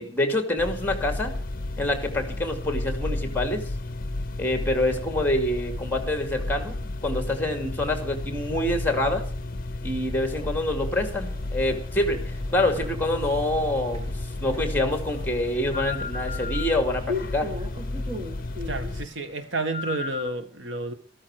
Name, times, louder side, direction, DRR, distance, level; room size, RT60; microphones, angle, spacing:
voice 1, 0.0-1.3 1.8-3.7 4.4-9.2 9.8-14.0 14.4-17.5, left 1 dB, 10° left, 2.5 m, -26 dB
sound 1, 0.6-19.1, left 2 dB, 50° left, 0.7 m, -32 dB
sound 2, 10.8-20.3, left 4 dB, 35° right, 1.6 m, -38 dB
voice 2, 18.6-20.9, right 2 dB, 80° right, 1.7 m, -30 dB
14.5 x 13.5 x 4.9 m
head